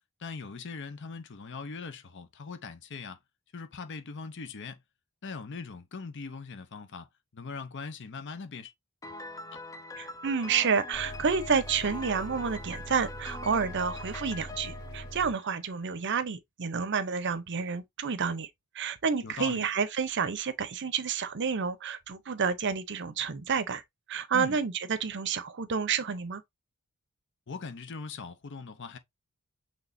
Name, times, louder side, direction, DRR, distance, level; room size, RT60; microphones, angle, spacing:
voice 1, 0.2-3.2 3.5-4.8 5.2-7.1 7.3-8.7 9.5-9.6 19.2-19.7 24.3-24.6 27.5-29.0, left 4 dB, 55° left, 0.7 m, -40 dB
Piano, 9.0-15.9, left 3 dB, 15° left, 0.4 m, -43 dB
voice 2, 10.0-18.5 18.7-23.8 24.1-26.4, right 6 dB, 50° right, 0.6 m, -29 dB
sound 1, 10.9-15.3, right 1 dB, 80° left, 2.6 m, -43 dB
6.1 x 3.3 x 2.6 m
head